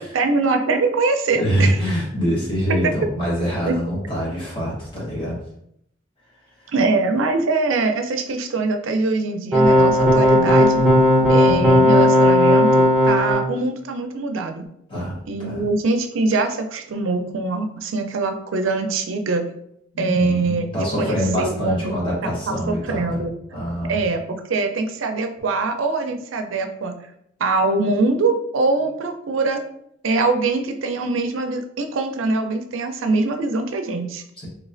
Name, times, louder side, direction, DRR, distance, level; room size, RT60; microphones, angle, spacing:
voice 1, 0.0-1.7 2.8-2.9 3.6-3.8 6.7-10.8 11.3-14.7 15.3-19.4 20.0-20.7 21.0-21.9 22.2-23.3 23.9-26.9 27.4-29.6 30.0-34.2, right 3 dB, 90° right, 6 dB, 0.5 m, -23 dB
voice 2, 1.3-5.4 6.6-6.7 11.4-11.9 14.9-15.6 19.9-23.2 23.5-24.0 34.4-34.5, equal, 25° left, -6 dB, 1.1 m, -25 dB
sound 1, 9.5-13.4, equal, 5° right, 0.9 m, -15 dB
3.2 x 3.1 x 2.5 m, 0.73 s
head